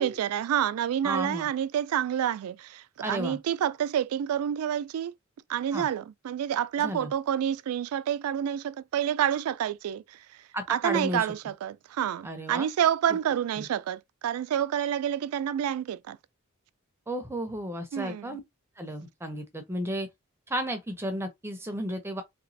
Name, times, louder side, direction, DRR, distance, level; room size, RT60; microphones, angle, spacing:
voice 1, 0.0-5.1 5.5-10.2 10.7-16.2 17.9-18.4, right 9 dB, 80° right, 0.3 m, -28 dB
voice 2, 1.0-1.5 3.0-3.4 5.7-5.9 6.8-7.1 10.5-11.3 12.2-12.7 13.6-13.7 17.1-18.4 18.8-20.1 20.5-22.2, equal, 10° right, 0.5 m, -33 dB
3.3 x 3.0 x 2.6 m
head